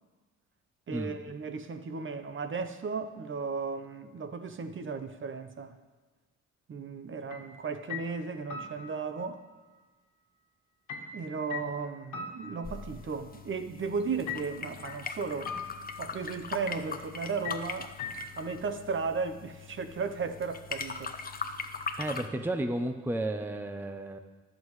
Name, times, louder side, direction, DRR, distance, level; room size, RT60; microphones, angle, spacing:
voice 1, 0.9-5.8 6.7-9.4 11.1-15.5 16.0-17.9 18.4-21.1, right 5 dB, 40° right, 0.9 m, -35 dB
sound 1, 7.3-7.5 7.9-9.3 10.9-13.2 14.3-15.1 15.4-16.3 17.4-18.5, left 5 dB, 80° left, 1.5 m, -41 dB
sound 2, 12.6-22.3, left 5 dB, 30° left, 0.8 m, -41 dB
voice 2, 22.0-24.2, right 1 dB, 5° right, 0.7 m, -32 dB
22.0 x 7.5 x 3.2 m
cardioid pair, 90°, 30 cm